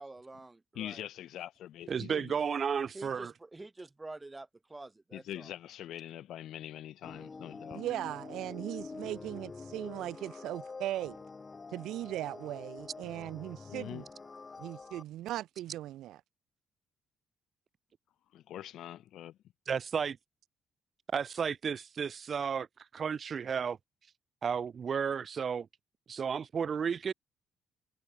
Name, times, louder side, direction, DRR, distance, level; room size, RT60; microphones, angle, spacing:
voice 1, 0.0-1.1 2.1-2.2 2.9-5.5, right 2 dB, 20° right, 2.3 m, -47 dB
voice 2, 0.8-2.3 5.1-7.8 13.7-14.0 18.3-19.4, left 12 dB, 75° left, 0.7 m, -43 dB
voice 3, 1.9-3.3 19.7-20.2 21.1-22.7 22.9-23.8 24.4-25.7 26.1-27.1, right 6 dB, 50° right, 0.7 m, -33 dB
sound 1, 7.0-15.0, left 4 dB, 30° left, 1.9 m, -46 dB
voice 4, 7.7-11.2 11.7-14.0 14.6-16.2, right 14 dB, 85° right, 0.4 m, -38 dB
cardioid pair, 90°, 0 cm